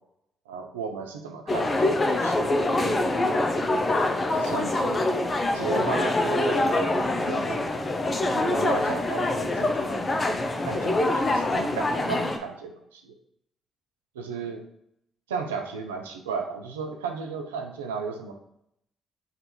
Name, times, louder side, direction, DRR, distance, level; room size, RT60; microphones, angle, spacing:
voice 1, 0.5-2.6 3.3-3.5 4.3-5.1 5.5-6.7 7.0-7.6 8.3-10.2 10.6-13.2 14.1-14.6 15.3-18.3, right 5 dB, 90° right, 3 dB, 0.5 m, -34 dB
sound 1, 1.5-12.4, left 2 dB, 35° left, 0.6 m, -25 dB
4.0 x 2.5 x 4.3 m, 0.74 s
hypercardioid pair, 45°, 0 cm